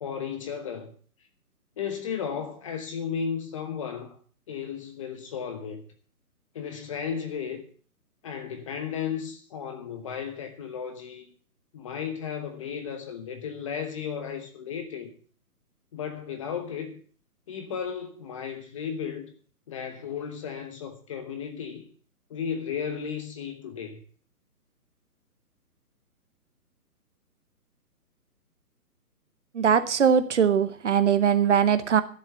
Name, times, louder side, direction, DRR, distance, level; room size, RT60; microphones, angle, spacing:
voice 1, 0.0-0.9 1.8-4.2 4.5-5.8 6.5-7.7 8.2-11.3 11.7-15.1 15.9-17.0 17.5-19.3 19.7-21.9 22.3-24.0, left 7 dB, 20° left, 1.1 m, -34 dB
voice 2, 29.5-32.0, right 7 dB, 50° right, 1.0 m, -21 dB
13.0 x 7.5 x 6.8 m
hypercardioid pair, 165°, 47 cm